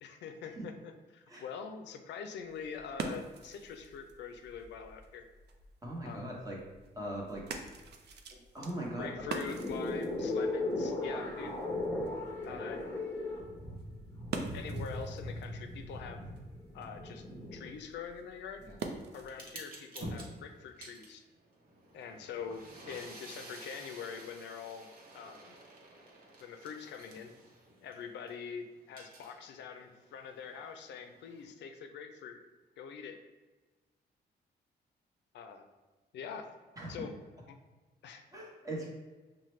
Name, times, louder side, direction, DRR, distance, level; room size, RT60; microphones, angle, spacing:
voice 1, 0.0-5.3 6.0-6.3 8.9-11.6 12.4-12.9 14.5-16.2 16.7-17.3 17.5-18.7 19.1-21.2 21.9-24.9 25.1-25.6 26.4-27.3 27.8-32.4 32.8-33.2 35.3-35.7 36.1-36.5 36.9-37.1 37.5-37.6 38.0-38.2, left 6 dB, 85° left, 7 dB, 0.4 m, -44 dB
sound 1, 2.4-19.5, right 4 dB, 70° right, 0.5 m, -46 dB
voice 2, 5.8-6.6 6.9-7.5 8.3-9.1 11.1-11.6 18.6-18.8 36.8-37.0 38.3-38.9, right 1 dB, 20° right, -3 dB, 1.0 m, -40 dB
sound 2, 8.9-17.7, left 2 dB, 10° left, 0.9 m, -37 dB
sound 3, 19.3-28.3 28.7-31.4, right 1 dB, 55° right, 0.9 m, -50 dB
5.6 x 2.1 x 3.1 m, 1.3 s
cardioid pair, 110°, 18 cm